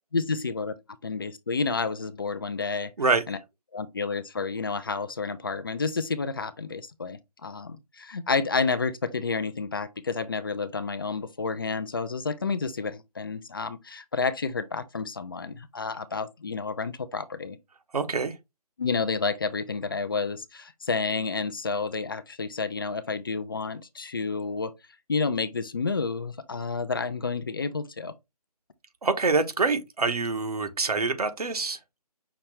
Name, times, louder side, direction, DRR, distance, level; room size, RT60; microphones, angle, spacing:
voice 1, 0.1-0.8 1.0-2.9 3.3-3.4 3.7-17.6 18.8-24.7 25.1-28.1, left 4 dB, 35° left, 0.4 m, -30 dB
voice 2, 17.9-18.3 29.0-31.8, right 4 dB, 65° right, 1.0 m, -25 dB
5.8 x 2.6 x 3.1 m
figure-of-eight pair, 150°, 20 cm